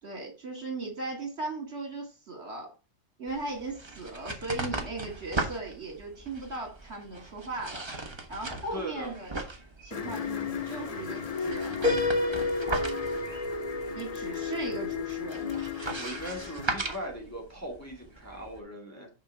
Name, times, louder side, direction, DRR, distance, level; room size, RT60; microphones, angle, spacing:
voice 1, 0.0-2.7 3.2-7.9 8.3-9.3 9.8-11.9 14.0-15.5, right 3 dB, 55° right, 1 dB, 2.8 m, -37 dB
sound 1, 3.3-18.6, right 2 dB, 20° right, 1.1 m, -39 dB
voice 2, 8.7-9.1 16.0-19.1, equal, 10° left, -2 dB, 2.2 m, -39 dB
sound 2, 9.9-16.7, left 6 dB, 40° left, 0.5 m, -35 dB
Piano, 11.8-15.6, left 2 dB, 40° right, 1.8 m, -31 dB
6.6 x 5.7 x 4.7 m, 0.32 s
omnidirectional pair, 1.3 m